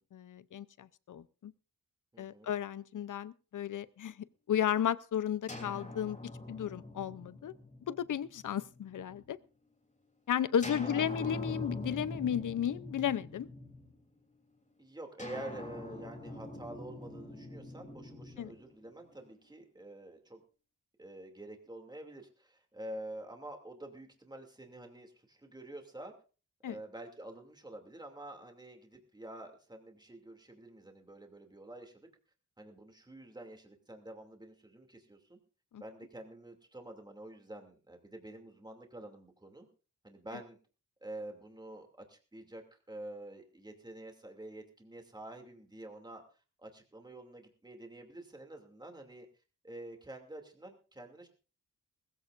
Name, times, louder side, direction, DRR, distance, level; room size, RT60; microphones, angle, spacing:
voice 1, 0.0-1.5 2.2-6.2 6.5-7.5 7.9-9.4 10.3-13.5 18.4-18.5 26.6-26.8 35.7-35.8, left 9 dB, 75° left, 17 dB, 0.7 m, -34 dB
voice 2, 2.1-2.5 10.8-11.1 14.8-20.4 21.0-26.1 26.6-32.1 32.6-35.4 35.8-39.7 40.0-40.6 41.0-46.2 46.6-49.3 49.6-51.3, right 1 dB, 15° right, 4 dB, 2.7 m, -48 dB
sound 1, 5.5-9.3 10.6-14.2 15.2-19.3, left 2 dB, 25° left, 3.3 m, -44 dB
20.5 x 15.0 x 2.6 m, 0.36 s
wide cardioid pair, 135°, 32 cm